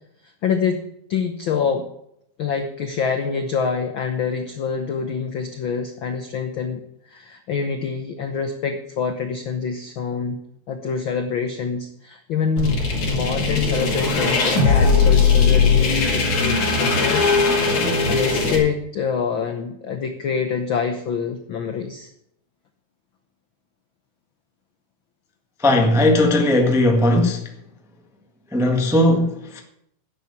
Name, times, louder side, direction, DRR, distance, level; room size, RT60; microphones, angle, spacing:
voice 1, 0.4-0.8 1.1-1.9 2.4-10.4 10.7-17.2 17.6-22.1, left 6 dB, 90° left, 1.0 m, -26 dB
sound 1, 12.6-18.6, left 4 dB, 60° left, 4.1 m, -19 dB
voice 2, 25.6-27.4 28.5-29.6, left 1 dB, 5° right, 0.4 m, -17 dB
11.5 x 7.7 x 8.3 m
omnidirectional pair, 3.7 m